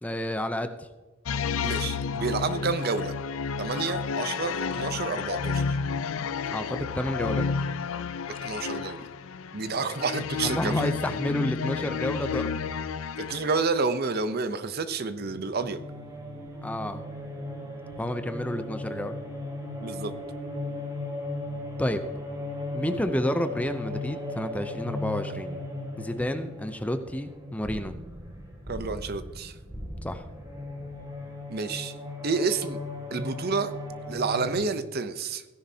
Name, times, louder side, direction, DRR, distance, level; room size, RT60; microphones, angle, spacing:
voice 1, 0.0-0.9 6.5-7.5 10.4-12.6 16.6-17.0 18.0-19.2 21.8-22.0 22.7-25.6 26.0-27.9 30.0-30.3, left 1 dB, 5° left, 9 dB, 0.5 m, -30 dB
sound 1, 1.3-13.8, left 5 dB, 90° left, 0.5 m, -31 dB
voice 2, 1.6-3.1 3.6-5.8 8.4-9.0 9.5-10.9 13.2-15.8 19.8-20.1 28.7-29.6 31.5-31.9 32.2-32.8 33.1-33.7 34.1-35.4, right 4 dB, 50° right, 11 dB, 0.7 m, -29 dB
sound 2, 15.2-34.5, left 1 dB, 20° right, 2.5 m, -37 dB
16.0 x 10.0 x 2.8 m, 1.2 s
head